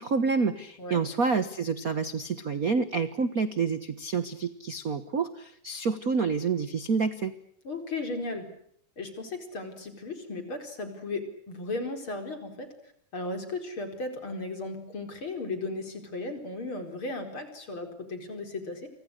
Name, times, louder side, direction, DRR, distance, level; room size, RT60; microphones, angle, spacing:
voice 1, 0.0-7.3, right 5 dB, 60° right, 12 dB, 0.9 m, -28 dB
voice 2, 7.7-8.5 9.0-12.7 13.1-18.9, left 2 dB, 40° left, 7 dB, 5.2 m, -36 dB
29.5 x 25.5 x 6.5 m, 0.68 s
omnidirectional pair, 3.6 m